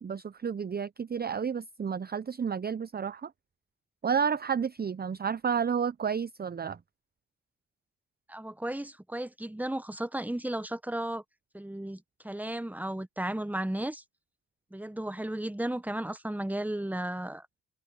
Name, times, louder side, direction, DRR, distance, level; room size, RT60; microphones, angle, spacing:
voice 1, 0.0-3.3 4.0-6.8, right 7 dB, 25° right, 0.6 m, -31 dB
voice 2, 8.3-11.2 11.5-14.0 14.7-17.5, right 1 dB, 5° right, 1.2 m, -34 dB
open air
supercardioid pair, 55°, 38 cm